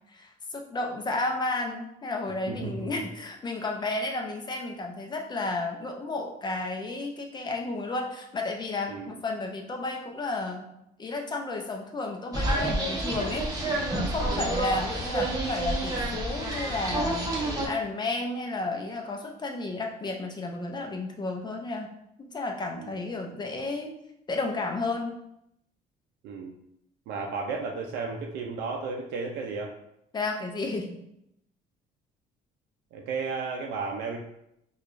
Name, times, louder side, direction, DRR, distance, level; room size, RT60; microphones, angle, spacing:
voice 1, 0.1-10.7 11.0-13.5 13.9-17.3 17.6-21.9 22.2-23.9 24.3-25.2 30.1-31.0, left 2 dB, 25° left, 2 dB, 0.6 m, -32 dB
voice 2, 2.5-2.9 8.9-9.1 14.2-14.4 22.8-22.9 26.2-26.5 27.1-29.7 32.9-34.2, right 4 dB, 80° right, 1 dB, 0.5 m, -33 dB
sound 1, 12.3-17.7, right 1 dB, 20° right, 0.8 m, -29 dB
4.6 x 2.4 x 2.5 m, 0.80 s
cardioid pair, 110°, 17 cm